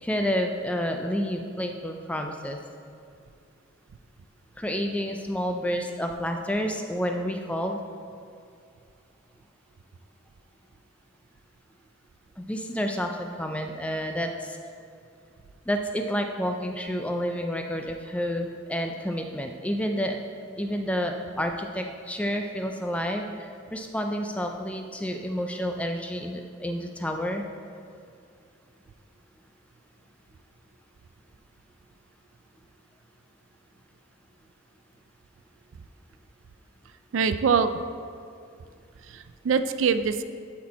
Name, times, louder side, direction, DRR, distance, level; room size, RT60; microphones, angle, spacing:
voice 1, 0.0-2.6 4.6-7.8 12.4-14.6 15.7-20.2 20.6-27.4, equal, 5° left, 4 dB, 0.3 m, -29 dB
voice 2, 37.1-37.7 39.1-40.2, right 6 dB, 70° right, 11 dB, 0.4 m, -24 dB
11.5 x 4.4 x 4.2 m, 2.4 s
head